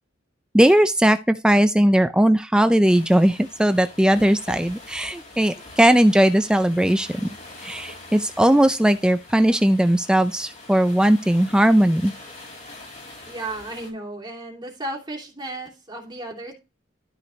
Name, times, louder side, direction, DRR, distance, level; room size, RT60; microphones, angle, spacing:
voice 1, 0.5-7.3 7.6-12.1, right 1 dB, 5° right, 0.4 m, -18 dB
sound 1, 2.8-13.9, left 2 dB, 40° left, 5.1 m, -43 dB
voice 2, 13.3-16.5, right 2 dB, 25° right, 2.9 m, -34 dB
13.5 x 4.9 x 3.1 m
head